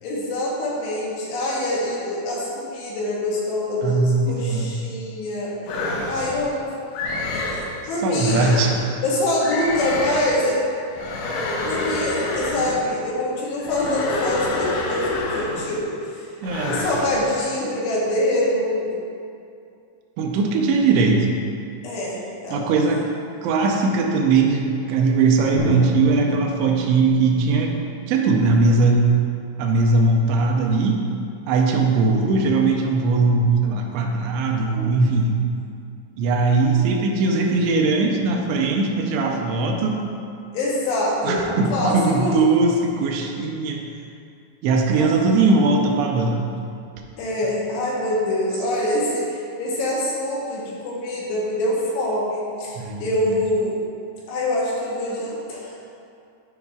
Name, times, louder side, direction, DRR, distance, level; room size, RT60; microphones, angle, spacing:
voice 1, 0.0-6.8 7.3-8.5 9.0-10.6 11.6-16.3 16.7-18.9 21.8-22.6 40.5-42.3 44.9-45.5 47.2-53.8 54.3-55.8, left 1 dB, 75° left, -5 dB, 2.9 m, -25 dB
voice 2, 3.8-4.8 8.0-8.8 16.4-16.8 20.2-21.3 22.5-23.0 23.4-27.7 28.1-29.1 29.6-31.1 31.5-35.4 36.2-40.0 41.2-43.8 44.6-46.6 52.8-53.4, right 3 dB, 80° right, 1 dB, 2.6 m, -20 dB
sound 1, 5.7-6.5 6.9-7.7 8.2-8.8 9.4-10.4 10.9-12.9 13.6-15.8 16.4-17.2, left 2 dB, 90° left, 3.3 m, -27 dB
Drum, 25.6-29.6, equal, 65° right, 3.5 m, -31 dB
11.0 x 4.8 x 2.3 m, 2.5 s
omnidirectional pair, 5.4 m